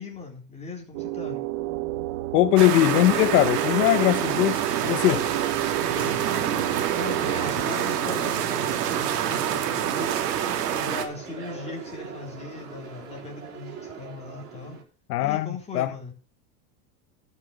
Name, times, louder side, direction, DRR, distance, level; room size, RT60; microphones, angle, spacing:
voice 1, 0.0-1.4 5.8-6.6 6.9-10.2 10.6-14.8 15.2-16.1, left 3 dB, 15° left, 3.7 m, -39 dB
sound 1, 0.9-7.5, right 18 dB, 50° right, 1.1 m, -31 dB
voice 2, 2.3-5.2 15.1-15.9, left 15 dB, 80° left, 0.9 m, -21 dB
sound 2, 2.6-11.0, right 10 dB, 90° right, 2.3 m, -27 dB
sound 3, 2.8-14.8, right 5 dB, 30° right, 4.2 m, -40 dB
12.5 x 6.6 x 6.5 m
supercardioid pair, 145°, 46 cm